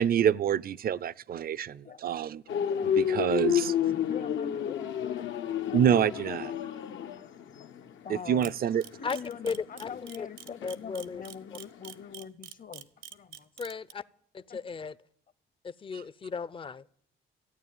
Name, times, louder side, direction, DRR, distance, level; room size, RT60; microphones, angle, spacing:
voice 1, 0.0-2.4 2.8-3.7 5.7-6.5 8.1-8.8, right 9 dB, 50° right, 0.5 m, -27 dB
sound 1, 2.5-11.6 11.9-12.1, left 9 dB, 75° left, 1.0 m, -31 dB
voice 2, 3.8-5.3 5.6-6.3 8.0-8.5 9.0-13.5 14.5-14.6, left 7 dB, 45° left, 0.9 m, -44 dB
Camera, 8.4-13.9, right 11 dB, 80° right, 0.9 m, -45 dB
voice 3, 9.4-10.3 10.6-11.2 13.6-14.0 14.3-15.0 15.6-16.9, left 5 dB, 25° left, 0.5 m, -36 dB
14.5 x 9.1 x 9.1 m
cardioid pair, 90°, 20 cm